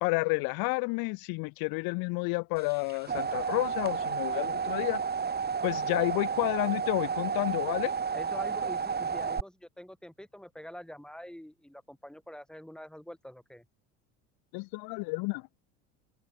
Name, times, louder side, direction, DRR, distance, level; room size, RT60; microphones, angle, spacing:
voice 1, 0.0-5.0 5.6-7.9 14.5-15.5, left 29 dB, 60° left, 0.9 m, -30 dB
sound 1, 2.7-9.4, right 6 dB, 25° right, 4.2 m, -31 dB
voice 2, 8.1-13.7, equal, ahead, 6.7 m, -45 dB
supercardioid pair, 100°, 40 cm